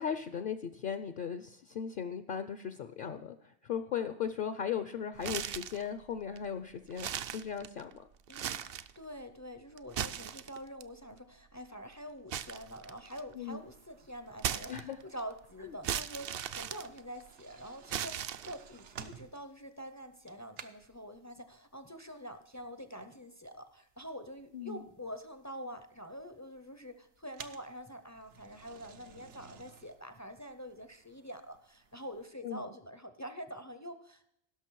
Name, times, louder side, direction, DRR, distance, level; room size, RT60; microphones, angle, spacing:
voice 1, 0.0-3.4 3.6-8.1 13.3-13.6 14.7-15.0 15.6-15.8 24.5-24.8 32.4-32.7, left 7 dB, 55° left, 10 dB, 0.7 m, -37 dB
sound 1, 5.2-5.9 6.4-6.5 6.9-7.9 8.3-9.0 9.8-10.8 12.3-13.3 14.4-15.2 15.8-17.4 17.9-18.8, right 9 dB, 65° right, 0.7 m, -37 dB
voice 2, 8.3-34.3, equal, 25° left, 9 dB, 0.4 m, -46 dB
sound 2, 13.4-32.3, right 7 dB, 80° right, 1.1 m, -56 dB
16.5 x 6.3 x 4.6 m, 0.76 s
omnidirectional pair, 1.2 m